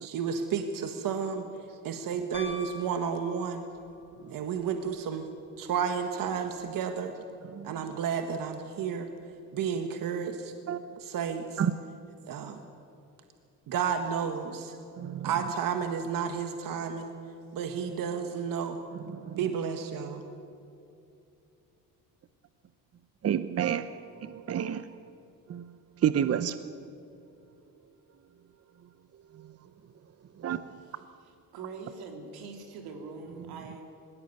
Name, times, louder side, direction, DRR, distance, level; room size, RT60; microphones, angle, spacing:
voice 1, 0.0-3.6 4.3-5.3 5.6-7.1 7.6-9.1 9.5-10.5 11.1-11.6 12.3-12.6 13.7-14.8 15.2-17.1 17.5-18.8 19.4-20.2, right 7 dB, 65° right, 6 dB, 1.5 m, -32 dB
Piano, 2.3-3.9 6.3-6.4, left 1 dB, 35° left, 4.6 m, -43 dB
voice 2, 7.4-8.0 10.7-11.0 11.6-11.7 15.0-15.5 18.9-19.5 23.2-25.0 25.5-26.7 28.8-28.9 29.3-29.7 30.3-31.0 33.6-33.7, right 9 dB, 45° right, 12 dB, 0.7 m, -32 dB
voice 3, 31.5-33.8, right 4 dB, 90° right, 3 dB, 3.3 m, -42 dB
19.5 x 17.0 x 9.4 m, 2.7 s
cardioid pair, 95°, 36 cm